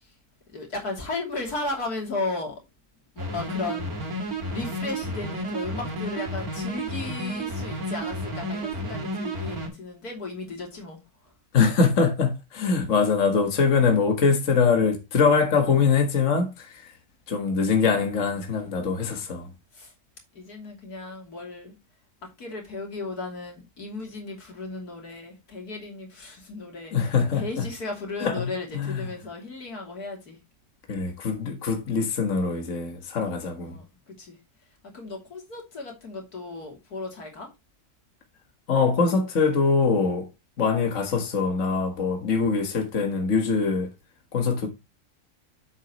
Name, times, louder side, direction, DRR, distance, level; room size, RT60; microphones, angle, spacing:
voice 1, 0.5-2.5 3.2-3.9 4.5-11.0 19.0-19.2 19.7-19.9 20.3-21.7 22.4-26.9 27.4-30.4 33.6-34.3 34.9-37.5, left 3 dB, 85° left, 3.5 m, -35 dB
sound 1, 3.2-9.7, right 1 dB, 70° right, 3.0 m, -31 dB
voice 2, 11.5-16.9 17.3-19.5 26.9-27.6 28.2-29.1 30.9-33.8 38.7-40.3 40.6-43.9 44.3-44.7, left 5 dB, 55° left, 1.8 m, -23 dB
8.2 x 8.2 x 3.0 m
omnidirectional pair, 1.6 m